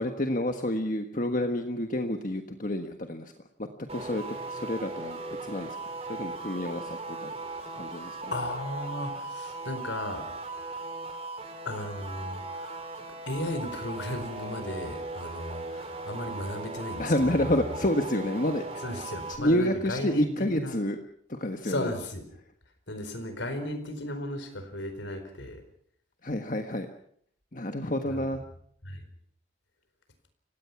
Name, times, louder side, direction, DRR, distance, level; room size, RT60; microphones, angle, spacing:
voice 1, 0.0-3.3 3.6-5.8 6.1-7.3 7.7-8.3 17.0-18.8 19.3-21.0 21.3-21.9 26.2-26.9 27.5-28.4, left 1 dB, 45° left, 5 dB, 1.5 m, -29 dB
sound 1, 3.9-19.4, right 3 dB, 35° right, 3.9 m, -38 dB
voice 2, 8.3-10.2 11.6-12.8 13.3-17.5 18.8-20.8 21.6-22.2 22.9-25.6 28.1-28.3 28.8-29.0, left 1 dB, 85° left, 9 dB, 4.6 m, -35 dB
30.0 x 17.0 x 6.0 m, 0.64 s
head